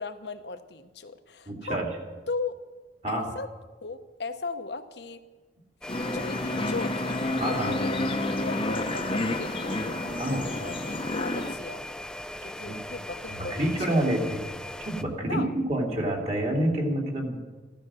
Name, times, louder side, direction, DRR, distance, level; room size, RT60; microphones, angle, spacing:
voice 1, 0.0-1.8 2.3-2.6 3.1-3.5 3.8-5.2 5.9-8.0 8.4-12.0 12.4-14.3 15.3-15.5, left 3 dB, 65° left, 9 dB, 1.0 m, -37 dB
voice 2, 1.5-2.0 3.0-3.3 7.4-7.7 10.2-10.4 12.7-12.8 13.4-14.4 14.8-17.4, right 1 dB, 40° right, 0 dB, 2.7 m, -27 dB
sound 1, 5.8-15.0, left 1 dB, 5° left, 0.5 m, -39 dB
sound 2, 5.9-11.5, left 2 dB, 30° left, 0.9 m, -30 dB
15.0 x 12.5 x 6.2 m, 1.3 s
head